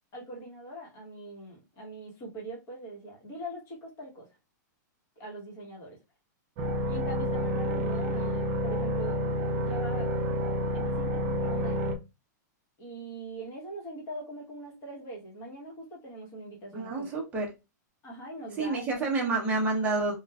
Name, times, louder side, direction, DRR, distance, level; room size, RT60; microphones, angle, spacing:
voice 1, 0.1-4.3 5.2-6.0 6.9-9.2 9.5-10.1 10.7-11.9 12.8-17.1 18.0-18.8, right 1 dB, 25° left, 1.1 m, -42 dB
sound 1, 6.6-12.0, equal, 35° right, 0.5 m, -29 dB
voice 2, 16.7-17.5 18.6-20.2, right 3 dB, 15° right, 0.8 m, -28 dB
3.0 x 2.3 x 2.3 m
supercardioid pair, 160°, 10 cm